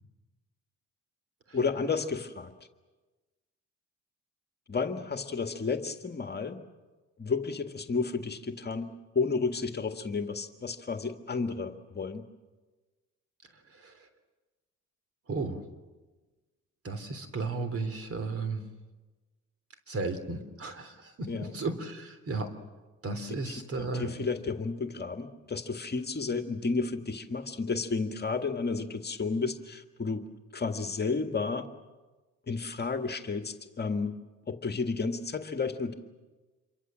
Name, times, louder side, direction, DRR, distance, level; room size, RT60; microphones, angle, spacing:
voice 1, 1.5-2.5 4.7-6.6 7.2-8.9 9.1-12.2 21.3-21.5 23.3-30.3 30.5-31.7 32.5-34.2 34.5-35.9, left 4 dB, 35° left, 6 dB, 1.9 m, -32 dB
voice 2, 15.3-15.6 16.8-18.7 19.9-22.6 23.0-24.1, right 3 dB, 50° right, 10 dB, 3.4 m, -34 dB
27.5 x 23.0 x 7.6 m, 1.2 s
cardioid pair, 90°, 30 cm